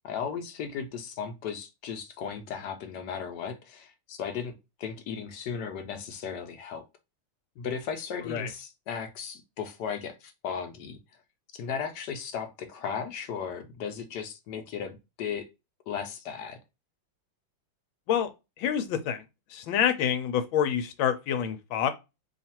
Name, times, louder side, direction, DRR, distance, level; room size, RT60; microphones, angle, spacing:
voice 1, 0.0-4.5 4.8-6.8 7.6-11.0 11.5-15.5 15.9-16.6, left 7 dB, 70° left, 1.1 m, -36 dB
voice 2, 18.6-19.2 19.5-21.9, left 8 dB, 85° left, 1.4 m, -27 dB
3.1 x 2.4 x 4.2 m
omnidirectional pair, 2.1 m